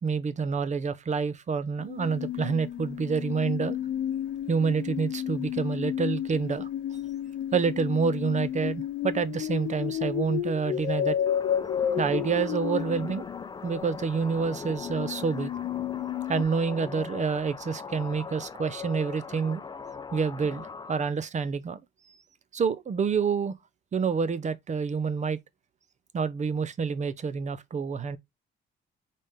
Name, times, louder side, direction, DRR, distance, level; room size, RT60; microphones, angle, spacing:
voice 1, 0.0-3.8 4.5-6.7 7.5-11.2 12.0-13.2 13.6-15.5 16.3-19.6 20.1-21.8 22.5-23.5 23.9-25.4 26.1-28.2, right 5 dB, 35° right, 0.6 m, -28 dB
sound 1, 1.8-13.5 14.4-16.4, left 10 dB, 85° left, 0.7 m, -32 dB
sound 2, 11.3-21.0, left 5 dB, 20° left, 0.5 m, -40 dB
4.1 x 3.3 x 3.6 m
cardioid pair, 90°, 20 cm